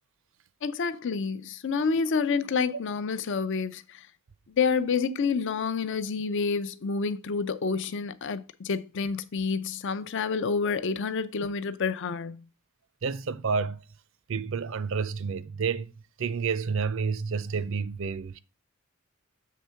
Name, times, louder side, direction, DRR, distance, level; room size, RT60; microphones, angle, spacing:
voice 1, 0.6-4.0 4.6-12.4, left 5 dB, 60° left, 0.5 m, -28 dB
voice 2, 13.0-13.8 14.3-15.9 16.2-18.4, right 5 dB, 60° right, 0.5 m, -29 dB
7.5 x 3.6 x 5.6 m
head